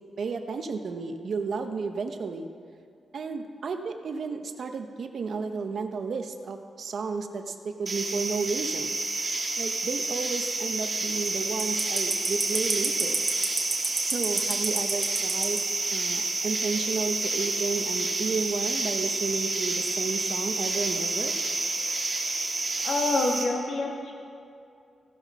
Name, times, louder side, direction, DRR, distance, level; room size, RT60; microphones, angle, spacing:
voice 1, 0.2-2.5 3.1-9.0 9.6-13.2 14.0-15.6 15.9-21.3, right 4 dB, 55° right, 6 dB, 0.7 m, -32 dB
sound 1, 7.9-23.4, right 2 dB, 25° right, 1.5 m, -29 dB
voice 2, 22.8-24.1, left 2 dB, 75° left, -1 dB, 1.9 m, -27 dB
15.5 x 5.8 x 5.9 m, 2.4 s
wide cardioid pair, 155°, 0 cm